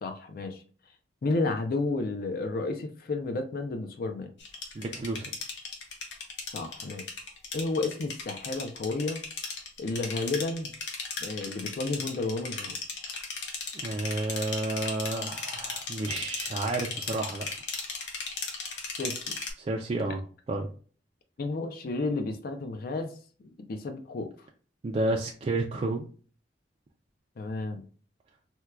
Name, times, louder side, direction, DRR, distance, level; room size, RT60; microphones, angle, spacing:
voice 1, 0.0-0.6 1.2-4.3 6.5-7.1 7.5-9.2 9.8-10.7 11.2-12.8 19.0-19.4 20.0-20.1 21.4-23.2 23.4-24.3 27.4-27.8, left 3 dB, 55° left, 7 dB, 0.4 m, -32 dB
sound 1, 4.4-19.5, left 4 dB, 80° left, 0.8 m, -37 dB
voice 2, 4.7-5.3 13.8-17.5 19.6-20.2 20.5-20.7 24.8-26.1, right 2 dB, 35° right, 1 dB, 0.3 m, -31 dB
4.4 x 2.2 x 2.3 m, 0.41 s
head